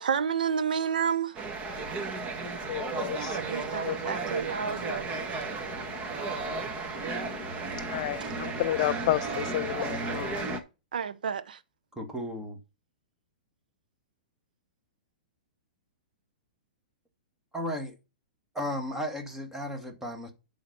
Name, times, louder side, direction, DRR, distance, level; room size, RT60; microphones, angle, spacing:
voice 1, 0.0-1.4 3.3-5.1 8.2-8.4 10.9-11.6, right 7 dB, 75° right, 0.9 m, -30 dB
sound 1, 1.3-10.6, right 4 dB, 25° right, 1.7 m, -34 dB
voice 2, 2.6-3.5 3.8-4.2 5.2-10.6, left 14 dB, 50° left, 0.3 m, -33 dB
voice 3, 12.0-12.6 17.5-18.0 18.5-20.3, equal, 10° right, 2.0 m, -34 dB
11.0 x 4.1 x 5.6 m
hypercardioid pair, 115°, 5 cm